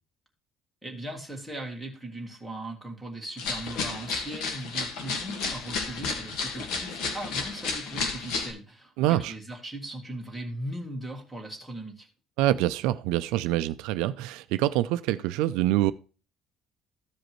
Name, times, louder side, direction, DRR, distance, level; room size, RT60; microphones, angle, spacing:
voice 1, 0.8-12.1, right 1 dB, 5° left, 1.7 m, -38 dB
sound 1, 3.4-8.5, left 4 dB, 70° left, 1.6 m, -32 dB
voice 2, 9.0-9.3 12.4-15.9, right 14 dB, 90° right, 0.3 m, -25 dB
14.5 x 5.1 x 3.1 m
cardioid pair, 160°, 0 cm